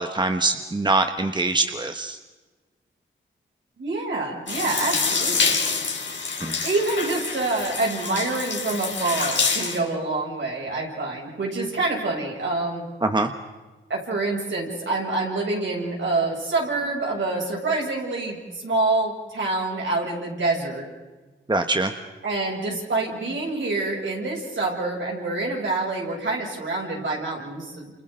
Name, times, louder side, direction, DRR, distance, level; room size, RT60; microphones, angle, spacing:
voice 1, 0.0-2.2 6.4-6.6 13.0-13.3 21.5-21.9, right 2 dB, 20° right, 6 dB, 1.3 m, -23 dB
voice 2, 3.8-5.6 6.6-12.8 13.9-20.8 22.2-28.0, right 2 dB, 65° right, -2 dB, 7.4 m, -26 dB
sound 1, 4.5-9.8, left 4 dB, 65° left, 4.0 m, -26 dB
29.0 x 29.0 x 3.9 m, 1.3 s
cardioid pair, 55°, 21 cm